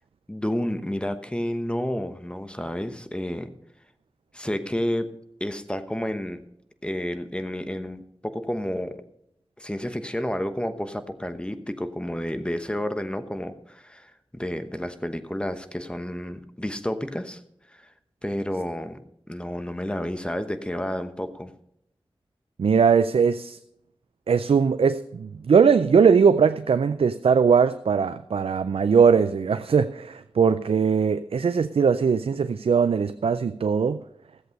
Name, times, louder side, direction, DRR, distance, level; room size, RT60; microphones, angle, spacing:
voice 1, 0.3-3.5 4.3-5.1 5.4-6.4 6.8-9.0 9.6-17.4 17.7-17.9 18.2-19.0 19.3-21.5, left 1 dB, 10° left, 9 dB, 1.1 m, -30 dB
voice 2, 22.6-23.6 24.3-34.0, right 6 dB, 85° right, 11 dB, 0.4 m, -20 dB
14.0 x 7.8 x 5.3 m, 0.75 s
wide cardioid pair, 55°, 10 cm